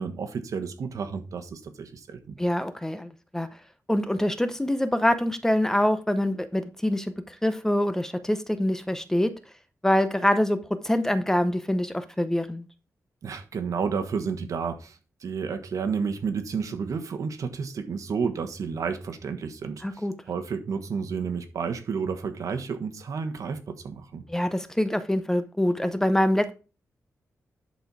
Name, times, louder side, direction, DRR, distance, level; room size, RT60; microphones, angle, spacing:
voice 1, 0.0-2.3 13.2-24.2, right 5 dB, 70° right, 1.3 m, -31 dB
voice 2, 2.4-3.5 3.9-9.3 9.8-12.7 19.8-20.1 24.3-26.5, left 1 dB, 10° left, 0.7 m, -25 dB
11.0 x 4.3 x 4.7 m
wide cardioid pair, 120°, 6 cm